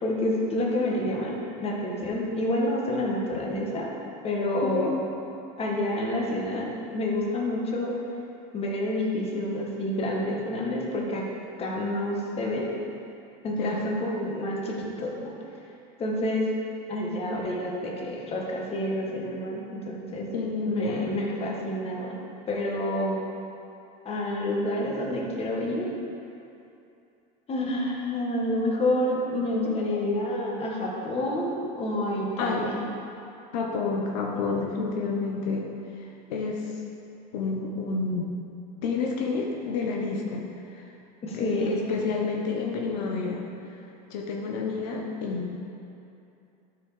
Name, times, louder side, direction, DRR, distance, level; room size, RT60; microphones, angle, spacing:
voice 1, 0.0-3.9 4.2-4.9 5.6-8.0 8.5-11.2 11.6-12.7 13.4-15.3 16.0-16.5 16.9-20.3 20.7-22.2 22.5-23.2 24.1-25.9 27.5-32.9 41.2-41.7, left 1 dB, 30° left, -2 dB, 1.7 m, -28 dB
voice 2, 13.5-13.8 20.3-21.2 32.4-32.6 33.5-35.7 36.0-36.7 37.3-38.3 38.8-40.4 40.7-40.9 41.3-43.5 44.1-45.6, left 4 dB, 75° left, -1 dB, 1.2 m, -29 dB
12.5 x 5.1 x 5.0 m, 2.7 s
supercardioid pair, 125°, 21 cm